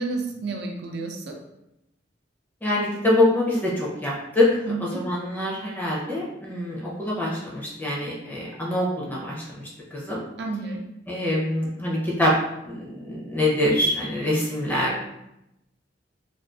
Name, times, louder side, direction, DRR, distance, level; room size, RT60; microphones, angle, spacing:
voice 1, 0.0-1.4 4.7-5.0 10.4-10.8, right 3 dB, 60° right, 2 dB, 0.3 m, -30 dB
voice 2, 2.6-10.2 11.1-12.3 12.6-15.0, left 1 dB, 10° left, -5 dB, 0.5 m, -25 dB
2.5 x 2.3 x 2.3 m, 0.87 s
head